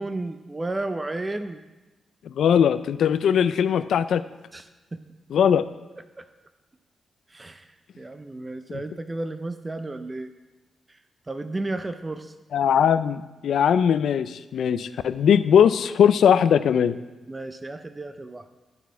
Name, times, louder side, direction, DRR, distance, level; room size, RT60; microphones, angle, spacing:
voice 1, 0.0-1.6 4.5-4.7 6.2-6.3 7.3-7.6 8.0-10.3 11.3-12.3 17.3-18.5, right 2 dB, 20° right, 9 dB, 0.4 m, -32 dB
voice 2, 2.4-4.2 5.3-5.7 8.7-8.8 12.5-17.0, left 8 dB, 80° left, 14 dB, 0.3 m, -20 dB
12.0 x 4.1 x 5.5 m, 1.1 s
cardioid pair, 110°, 0 cm